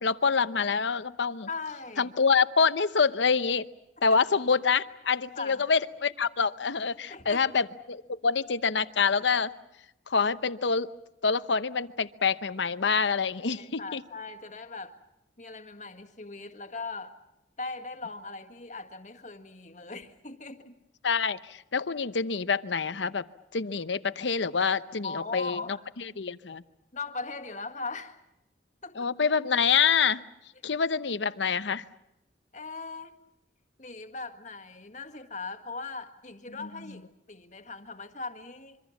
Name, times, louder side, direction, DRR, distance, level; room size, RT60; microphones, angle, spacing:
voice 1, 0.0-1.5 2.0-3.7 4.0-9.5 10.1-10.9 11.2-14.0 21.0-23.2 23.5-26.6 29.0-30.2 30.6-31.8 36.6-36.7, left 5 dB, 80° left, 14 dB, 0.9 m, -26 dB
voice 2, 1.5-2.1 4.1-4.2 5.4-5.6 7.1-7.4 13.5-14.9 15.4-17.1 17.6-20.8 25.0-25.8 26.9-28.2 28.8-29.1 32.5-33.1 33.8-38.8, left 3 dB, 40° left, 6 dB, 1.7 m, -39 dB
26.0 x 24.5 x 7.2 m, 0.86 s
head